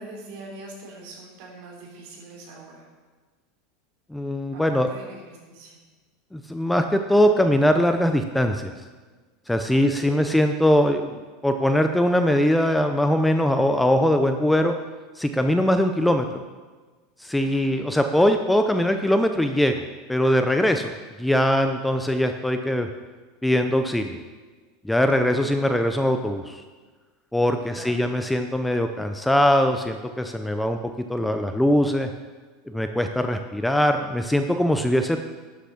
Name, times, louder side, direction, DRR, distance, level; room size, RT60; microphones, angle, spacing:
voice 1, 0.0-2.9 4.5-5.8 9.7-10.2 17.4-17.9 25.3-25.8 27.6-28.0, right 2 dB, 60° right, -2 dB, 3.8 m, -43 dB
voice 2, 4.1-4.9 6.3-8.7 9.5-11.1 11.4-14.7 15.2-16.3 17.2-19.8 20.1-20.9 21.2-22.9 23.4-24.2 24.8-26.6 27.3-30.8 31.1-32.1 32.7-35.2, equal, 5° left, 6 dB, 0.5 m, -21 dB
11.5 x 6.9 x 5.8 m, 1.4 s
supercardioid pair, 155°, 0 cm